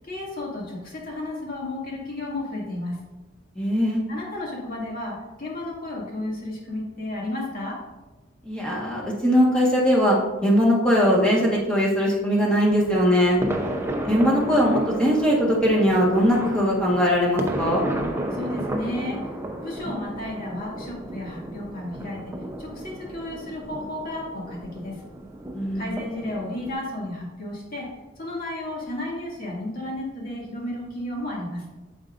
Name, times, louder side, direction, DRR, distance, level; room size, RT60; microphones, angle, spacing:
voice 1, 0.0-3.0 4.1-7.8 18.3-19.3 19.6-25.0 25.7-27.9 28.2-31.6, left 1 dB, 50° left, -4 dB, 2.3 m, -33 dB
voice 2, 3.5-4.0 8.4-13.4 14.1-17.8 25.5-25.9, equal, 5° left, -5 dB, 1.5 m, -20 dB
sound 1, 12.7-26.7, right 1 dB, 15° right, 0.7 m, -33 dB
8.7 x 7.2 x 2.6 m, 1.1 s
head